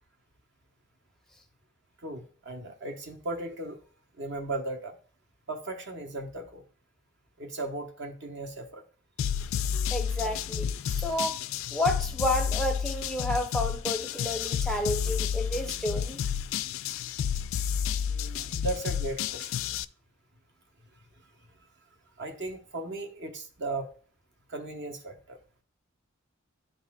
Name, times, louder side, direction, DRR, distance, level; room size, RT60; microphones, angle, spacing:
voice 1, 2.0-3.8 4.2-5.0 5.5-6.6 7.4-8.8 18.0-19.6 21.2-21.3 22.2-23.9 24.5-25.4, right 2 dB, 60° right, 1.1 m, -36 dB
sound 1, 9.2-19.8, left 8 dB, 70° left, 0.3 m, -31 dB
voice 2, 9.9-11.4 11.7-16.2, left 1 dB, ahead, 0.5 m, -31 dB
11.0 x 4.0 x 2.3 m
head